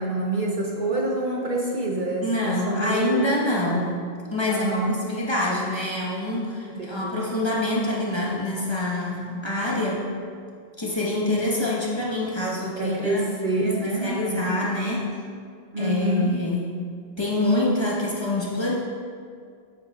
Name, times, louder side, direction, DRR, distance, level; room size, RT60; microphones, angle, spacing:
voice 1, 0.0-3.3 4.5-5.0 6.7-7.2 12.8-14.7 15.7-16.4, right 2 dB, 50° right, -1 dB, 0.9 m, -27 dB
voice 2, 2.2-4.0 4.3-10.1 10.8-13.2 13.8-15.2 15.8-16.8 17.2-18.8, left 1 dB, 25° left, -6 dB, 1.4 m, -26 dB
9.5 x 9.3 x 2.5 m, 2.2 s
omnidirectional pair, 1.1 m